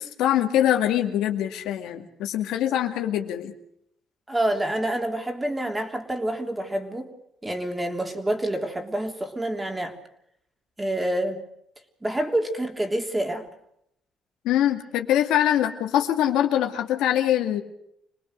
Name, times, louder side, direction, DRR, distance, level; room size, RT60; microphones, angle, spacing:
voice 1, 0.0-3.5 14.4-17.6, left 11 dB, 85° left, 4 dB, 2.2 m, -23 dB
voice 2, 4.3-7.1 7.4-10.0 10.8-11.4 12.0-13.5, right 1 dB, 15° right, 4 dB, 3.3 m, -27 dB
26.5 x 19.5 x 6.5 m, 0.75 s
cardioid pair, 90°, 0 cm